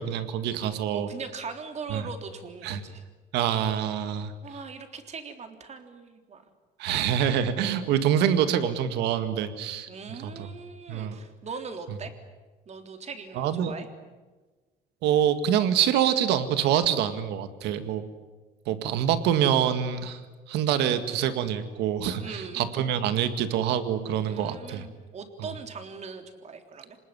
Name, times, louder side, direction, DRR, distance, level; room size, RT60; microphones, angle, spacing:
voice 1, 0.0-1.1 1.9-2.1 2.6-2.8 3.3-4.3 6.8-9.9 10.2-10.5 10.9-11.2 13.4-13.7 15.0-18.0 18.7-20.2 20.5-24.8, right 9 dB, 85° right, 10 dB, 2.0 m, -25 dB
voice 2, 0.9-3.0 4.4-6.4 7.6-8.0 9.9-12.1 12.7-13.9 22.2-22.7 24.2-27.0, right 5 dB, 40° right, 6 dB, 3.5 m, -40 dB
26.5 x 19.5 x 9.9 m, 1.3 s
cardioid pair, 110°, 17 cm